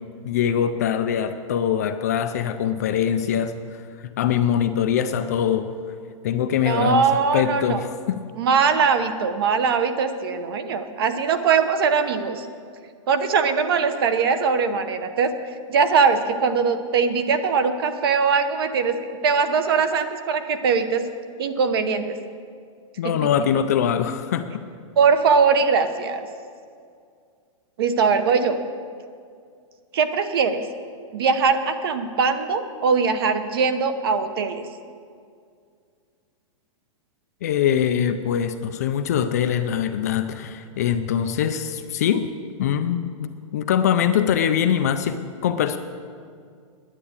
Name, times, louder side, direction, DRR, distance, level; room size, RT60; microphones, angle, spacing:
voice 1, 0.2-3.5 4.2-5.7 6.2-8.2 23.0-24.4 37.4-42.3 42.6-45.8, left 9 dB, 30° left, 8 dB, 0.4 m, -23 dB
voice 2, 6.7-7.8 8.4-12.5 13.1-15.3 15.7-19.0 19.2-21.1 21.4-22.2 23.0-23.1 25.0-26.3 27.8-28.6 29.9-30.7 31.1-34.6, right 5 dB, 45° right, 10 dB, 0.9 m, -21 dB
10.0 x 9.6 x 8.6 m, 2.2 s
supercardioid pair, 180°, 17 cm